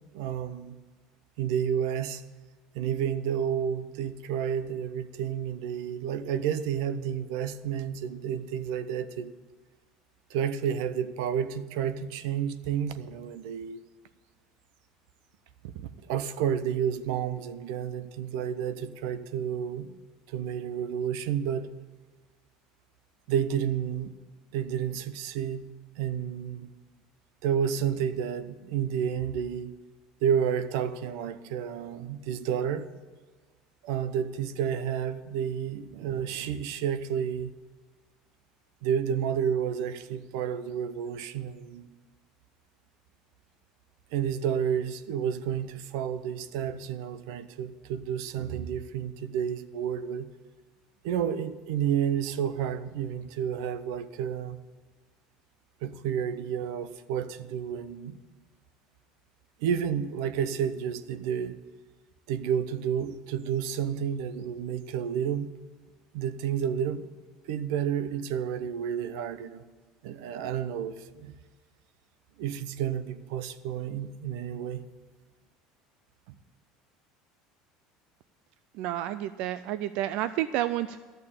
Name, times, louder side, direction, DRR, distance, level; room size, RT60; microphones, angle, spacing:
voice 1, 0.1-0.8 1.4-2.2 2.7-9.3 10.3-13.8 16.1-20.0 20.3-21.7 23.3-24.1 24.5-25.7 26.0-26.7 27.4-29.7 30.2-32.9 33.8-37.5 38.8-41.9 44.1-50.3 51.0-54.6 55.8-58.2 59.6-61.6 62.3-65.5 66.1-67.1 67.5-69.6 70.0-71.3 72.4-74.8, right 8 dB, 75° right, 0.7 m, -30 dB
voice 2, 78.8-81.0, right 13 dB, 50° right, 0.4 m, -30 dB
13.5 x 6.7 x 8.7 m
cardioid pair, 175°, 2 cm